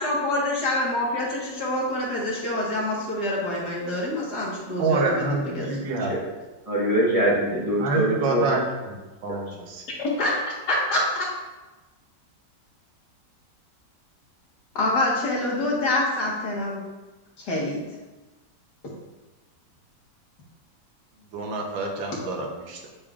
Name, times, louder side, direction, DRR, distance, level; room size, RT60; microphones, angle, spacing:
voice 1, 0.0-5.3 5.5-5.9 10.0-10.4 10.7-11.3 14.8-16.8 17.4-17.8, left 1 dB, 60° left, -4 dB, 2.1 m, -26 dB
voice 2, 4.8-6.1 7.8-8.6 9.2-9.8 21.3-22.9, right 3 dB, 85° right, 1 dB, 1.7 m, -27 dB
voice 3, 6.7-8.4 9.3-9.5, right 1 dB, 20° right, -6 dB, 1.3 m, -23 dB
9.6 x 5.3 x 2.5 m, 1.2 s
omnidirectional pair, 2.0 m